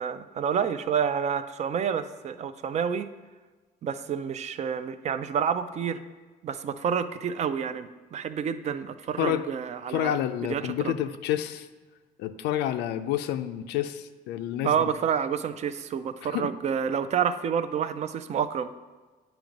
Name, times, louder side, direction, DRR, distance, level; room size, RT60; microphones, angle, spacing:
voice 1, 0.0-3.1 3.8-6.0 6.4-10.1 10.4-11.0 14.6-18.7, right 7 dB, 40° right, 11 dB, 0.4 m, -29 dB
voice 2, 9.9-11.7 12.2-14.8 16.2-16.5, left 11 dB, 85° left, 9 dB, 0.4 m, -29 dB
8.8 x 3.0 x 5.1 m, 1.3 s
cardioid pair, 110°, 17 cm